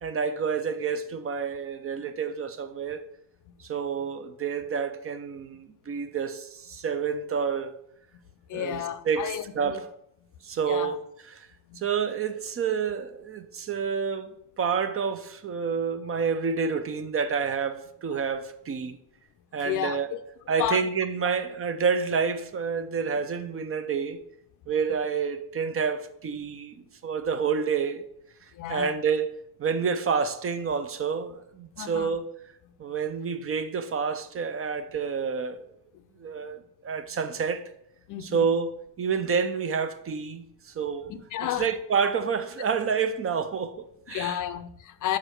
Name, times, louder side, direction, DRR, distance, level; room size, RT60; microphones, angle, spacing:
voice 1, 0.0-3.0 3.6-7.7 8.5-9.9 10.4-11.0 11.4-11.5 11.8-19.0 19.5-20.1 20.5-24.2 24.7-26.7 27.0-28.1 28.7-29.3 29.6-32.2 32.8-35.7 36.2-37.7 38.2-41.1 41.6-44.4, right 6 dB, 35° right, 0.5 m, -29 dB
voice 2, 8.5-9.8 10.7-11.0 11.7-11.8 19.6-20.2 20.6-20.9 21.2-21.3 28.5-28.9 31.8-32.1 35.9-36.0 38.1-38.5 41.1-41.8 44.1-45.2, left 11 dB, 50° left, 0.5 m, -32 dB
5.4 x 5.0 x 6.1 m
cardioid pair, 125°, 40 cm